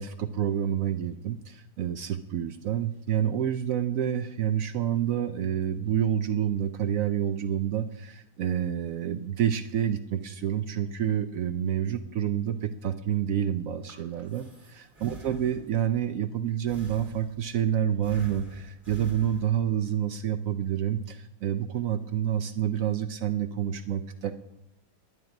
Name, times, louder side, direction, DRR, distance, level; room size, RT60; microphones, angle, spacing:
voice 1, 0.0-24.4, right 9 dB, 70° right, 10 dB, 0.8 m, -28 dB
Breathing, 13.6-15.9 16.7-17.6 18.0-19.8, right 1 dB, 30° right, 2.8 m, -47 dB
11.0 x 9.2 x 5.8 m, 0.89 s
omnidirectional pair, 1.8 m